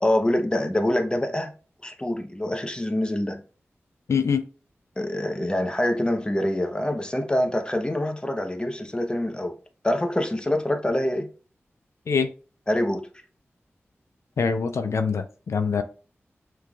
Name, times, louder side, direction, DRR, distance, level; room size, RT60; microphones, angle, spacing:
voice 1, 0.0-1.5 1.8-3.4 5.0-9.6 9.8-11.3 12.7-13.1, left 1 dB, 20° left, 0.8 m, -25 dB
voice 2, 4.1-4.4 12.1-12.3 14.4-15.8, left 5 dB, 85° left, 0.4 m, -24 dB
5.7 x 3.3 x 2.3 m
wide cardioid pair, 55°, 5 cm